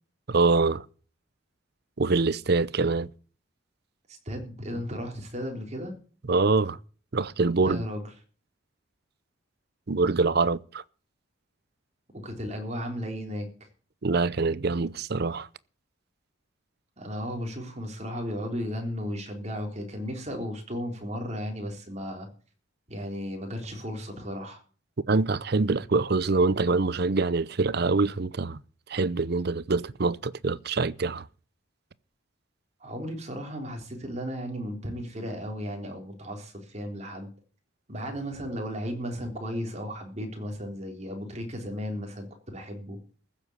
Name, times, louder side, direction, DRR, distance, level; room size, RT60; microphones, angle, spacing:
voice 1, 0.3-0.8 2.0-3.1 6.3-6.8 7.1-7.8 9.9-10.8 14.0-15.5 25.1-28.6 28.9-31.2, right 3 dB, 50° right, 0.6 m, -25 dB
voice 2, 4.3-5.9 7.6-8.0 12.1-13.5 17.0-22.3 22.9-24.6 32.8-37.3 37.9-43.0, equal, 35° right, 3.7 m, -35 dB
15.0 x 7.6 x 8.1 m
head